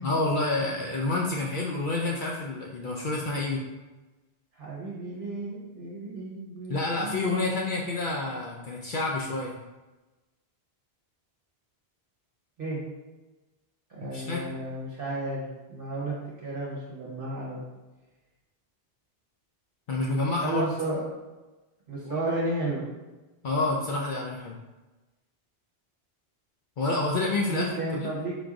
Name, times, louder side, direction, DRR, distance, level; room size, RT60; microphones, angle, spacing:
voice 1, 0.0-3.6 6.7-9.5 14.0-14.4 19.9-20.6 22.0-22.2 23.4-24.5 26.8-27.7, left 2 dB, 60° left, -2 dB, 0.6 m, -28 dB
voice 2, 4.5-7.6 12.6-12.8 13.9-16.1 16.4-17.6 20.4-21.0 21.9-22.8 27.5-28.3, right 2 dB, 60° right, -6 dB, 1.1 m, -33 dB
3.9 x 2.5 x 4.7 m, 1.1 s
omnidirectional pair, 1.1 m